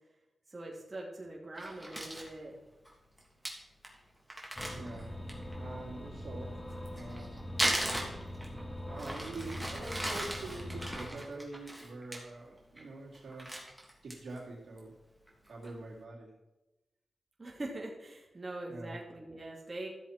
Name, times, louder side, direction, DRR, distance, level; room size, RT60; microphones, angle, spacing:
voice 1, 0.5-2.5 17.4-19.9, right 2 dB, 40° right, -2 dB, 2.7 m, -43 dB
Crumpling crinkling, 1.6-2.3 2.9-3.0 3.2-3.3 3.5-3.6 3.8-4.0 4.3-5.5 6.7-8.6 9.0-12.2 12.6-12.9 13.1-14.4 14.8-14.9 15.3-15.7, right 1 dB, 5° right, 3.0 m, -37 dB
sound 1, 4.6-11.1, equal, 20° left, 1.7 m, -43 dB
voice 2, 4.7-5.2 5.6-7.4 8.9-13.6 14.0-15.0 15.5-16.3 18.7-18.9, right 2 dB, 80° right, -3 dB, 3.0 m, -45 dB
14.0 x 7.3 x 4.4 m, 1.0 s
cardioid pair, 50°, 0 cm